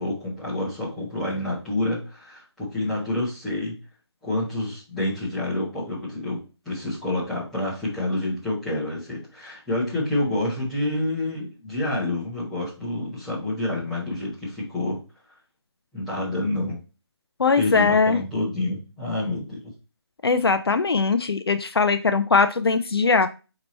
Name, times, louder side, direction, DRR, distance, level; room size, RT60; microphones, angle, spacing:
voice 1, 0.0-3.8 4.2-15.0 15.9-16.8 17.6-19.7, left 1 dB, ahead, -12 dB, 0.9 m, -28 dB
voice 2, 17.4-18.2 20.2-23.3, left 4 dB, 60° left, 9 dB, 0.4 m, -20 dB
4.4 x 2.9 x 4.2 m, 0.32 s
figure-of-eight pair, 165°, 14 cm